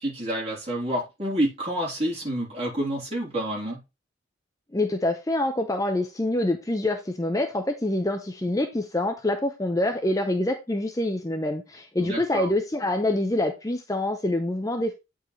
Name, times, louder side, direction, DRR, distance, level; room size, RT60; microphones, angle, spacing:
voice 1, 0.0-3.8 12.0-12.5, right 1 dB, 30° right, 3.2 m, -28 dB
voice 2, 4.7-14.9, left 1 dB, 15° left, 0.6 m, -26 dB
8.6 x 4.6 x 3.1 m
head